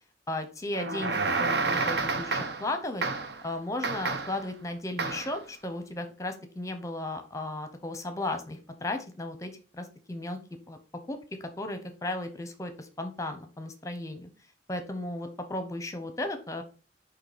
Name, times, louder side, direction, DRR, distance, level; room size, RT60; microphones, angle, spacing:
voice 1, 0.3-3.0 3.4-10.4 10.7-10.8 11.1-14.3 14.7-16.6, left 2 dB, 15° left, 7 dB, 0.7 m, -35 dB
sound 1, 0.7-2.7 3.0-3.4 3.8-4.4 5.0-5.4, right 3 dB, 60° right, 0.7 m, -29 dB
6.6 x 2.8 x 5.0 m, 0.36 s
head